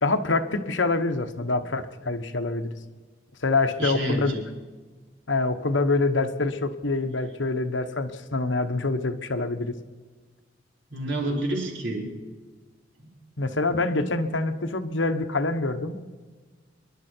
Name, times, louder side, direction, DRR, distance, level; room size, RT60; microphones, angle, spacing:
voice 1, 0.0-2.7 3.4-4.3 5.3-9.7 13.4-16.0, left 3 dB, 85° left, 8 dB, 1.2 m, -25 dB
voice 2, 3.8-4.4 10.9-12.1 13.0-13.1, right 1 dB, 75° right, -1 dB, 4.4 m, -29 dB
26.5 x 12.0 x 4.6 m, 1.4 s
head